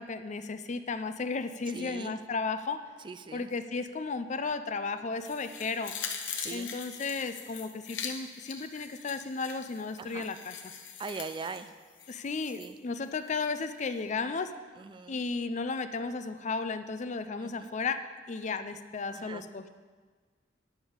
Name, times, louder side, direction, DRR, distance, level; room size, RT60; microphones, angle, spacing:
voice 1, 0.0-2.8 3.3-5.9 6.5-10.6 12.1-14.5 15.1-18.0 18.3-19.7, left 4 dB, 40° left, 10 dB, 0.5 m, -34 dB
voice 2, 1.7-2.2 3.0-3.5 6.3-6.7 10.0-10.3 11.0-11.7 12.5-12.8 14.8-15.2 17.4-17.7 19.1-19.5, right 4 dB, 25° right, 11 dB, 0.3 m, -41 dB
sound 1, 5.2-12.7 13.1-13.2, left 7 dB, 85° left, 1.0 m, -42 dB
10.5 x 5.3 x 7.1 m, 1.5 s
head